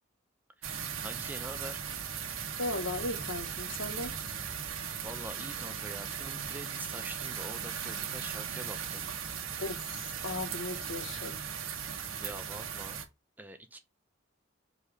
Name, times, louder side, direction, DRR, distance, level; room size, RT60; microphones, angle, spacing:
sound 1, 0.6-13.1, right 7 dB, 90° right, 1.1 m, -38 dB
voice 1, 1.0-1.8 5.0-9.0 12.1-13.0 13.4-13.8, right 1 dB, 10° right, 0.5 m, -45 dB
voice 2, 2.6-4.2 9.6-11.4, left 2 dB, 70° left, 1.2 m, -37 dB
5.3 x 4.1 x 4.8 m
head